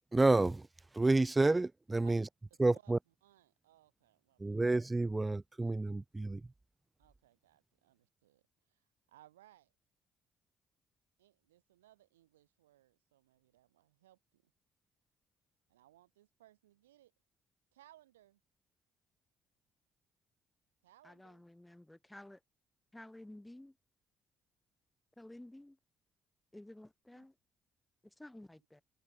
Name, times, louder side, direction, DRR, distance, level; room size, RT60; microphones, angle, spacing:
voice 1, 0.1-0.6 1.0-2.2 2.6-3.0 4.4-6.4, right 2 dB, 20° right, 0.4 m, -29 dB
voice 2, 2.5-4.6 7.0-8.4 8.7-9.7 11.2-14.5 15.7-17.1 17.7-18.4 20.8-21.4 27.1-27.3, right 14 dB, 85° right, 5.9 m, -65 dB
voice 3, 21.0-22.4 22.9-23.8 25.2-25.8 26.5-27.4 28.0-28.8, left 1 dB, 10° left, 7.4 m, -53 dB
hypercardioid pair, 45°, 0 cm